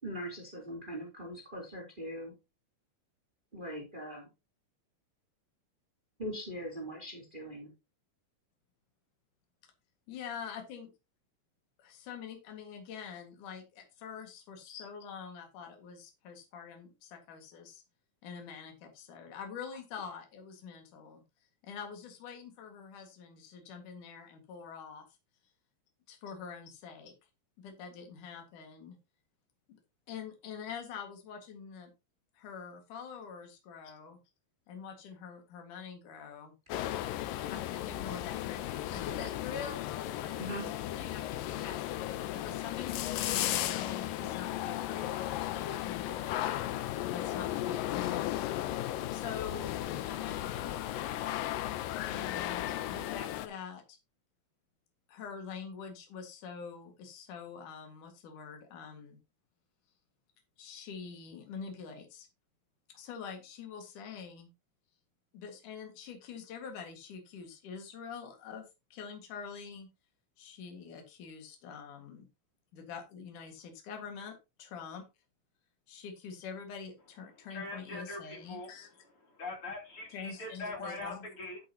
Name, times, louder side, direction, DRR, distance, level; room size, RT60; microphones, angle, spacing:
voice 1, 0.0-2.3 3.5-4.3 6.2-7.7 40.4-40.7, equal, 15° right, 0 dB, 3.1 m, -41 dB
voice 2, 10.1-10.9 11.8-17.8 18.2-21.2 21.6-25.1 26.1-27.1 27.6-28.9 29.7-29.8 30.1-31.9 32.3-34.2 34.7-36.5 37.5-41.9 42.3-46.7 47.0-51.4 52.0-54.0 55.1-59.2 60.6-62.3 62.9-64.5 65.3-69.9 70.4-72.3 72.7-75.0 75.9-78.9 80.1-81.3, left 6 dB, 65° left, 4 dB, 3.3 m, -45 dB
sound 1, 36.7-53.5, left 13 dB, 85° left, 2.5 m, -35 dB
voice 3, 77.5-78.7 79.3-81.6, left 2 dB, 40° left, 1 dB, 3.9 m, -41 dB
11.0 x 8.8 x 2.9 m, 0.25 s
omnidirectional pair, 3.9 m